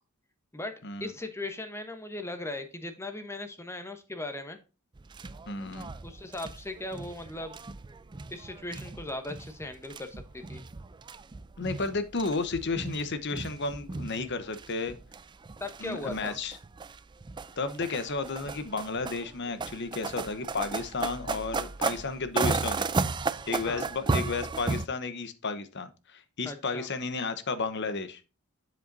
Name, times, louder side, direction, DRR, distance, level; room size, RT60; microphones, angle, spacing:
voice 1, 0.5-4.6 6.0-7.6 8.3-10.6 15.6-16.4 23.7-23.9 26.4-26.9, left 2 dB, 10° left, 1.0 m, -38 dB
sound 1, 5.0-24.9, right 4 dB, 20° right, 0.4 m, -35 dB
voice 2, 5.5-5.9 11.6-15.0 15.8-16.6 17.6-22.9 23.5-28.2, left 3 dB, 55° left, 1.0 m, -33 dB
7.7 x 7.7 x 2.7 m
head